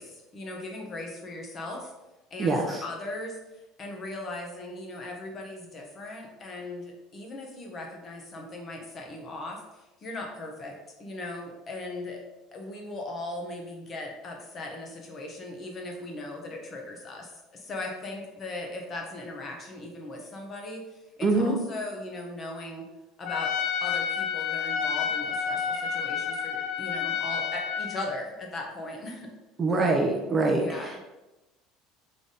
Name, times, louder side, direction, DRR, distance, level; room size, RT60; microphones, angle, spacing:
voice 1, 0.0-1.9 2.3-12.2 12.5-22.8 23.2-23.5 23.8-29.3 30.5-31.0, left 2 dB, 25° left, 1 dB, 0.8 m, -38 dB
voice 2, 2.4-2.8 21.2-21.5 29.6-31.0, right 3 dB, 20° right, 2 dB, 0.5 m, -24 dB
Trumpet, 23.2-28.1, left 7 dB, 55° left, 0.7 m, -30 dB
3.7 x 3.4 x 4.0 m, 1.0 s
cardioid pair, 160°, 0 cm